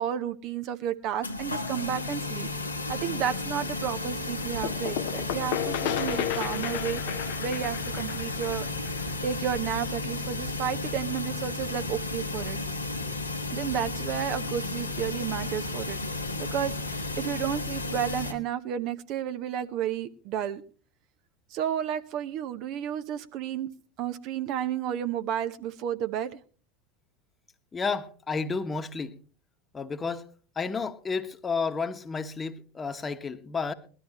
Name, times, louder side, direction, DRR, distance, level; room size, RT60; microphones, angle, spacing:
voice 1, 0.0-2.5 2.9-7.0 7.4-8.7 9.2-12.6 13.5-16.0 16.4-20.6 21.5-23.7 24.0-26.4, right 9 dB, 50° right, 10 dB, 0.9 m, -32 dB
sound 1, 1.2-18.3, left 2 dB, 90° left, 1.3 m, -33 dB
sound 2, 4.6-10.2, left 12 dB, 60° left, 0.7 m, -33 dB
voice 2, 27.7-29.2 29.7-30.3 30.5-33.7, left 4 dB, 20° left, 9 dB, 1.2 m, -31 dB
20.5 x 12.5 x 3.0 m, 0.37 s
figure-of-eight pair, 75°, 0 cm